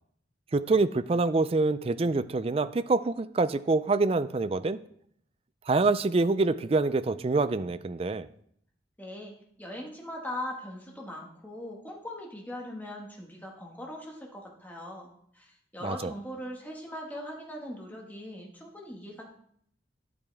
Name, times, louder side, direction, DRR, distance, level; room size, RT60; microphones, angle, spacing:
voice 1, 0.5-4.8 5.7-8.3 15.8-16.1, right 3 dB, 30° right, 14 dB, 0.4 m, -26 dB
voice 2, 9.0-19.2, left 1 dB, 10° left, -1 dB, 1.6 m, -40 dB
11.0 x 8.6 x 3.4 m, 0.67 s
head